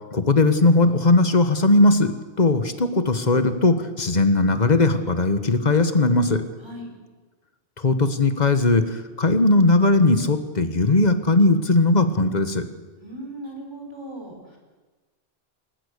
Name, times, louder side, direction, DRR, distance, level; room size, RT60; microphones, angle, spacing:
voice 1, 0.1-2.1 2.4-6.4 7.8-12.6, left 2 dB, 40° left, 9 dB, 1.5 m, -19 dB
voice 2, 6.6-6.9 13.0-14.6, right 1 dB, 25° right, 1 dB, 5.2 m, -38 dB
22.0 x 19.5 x 6.7 m, 1.3 s
omnidirectional pair, 1.1 m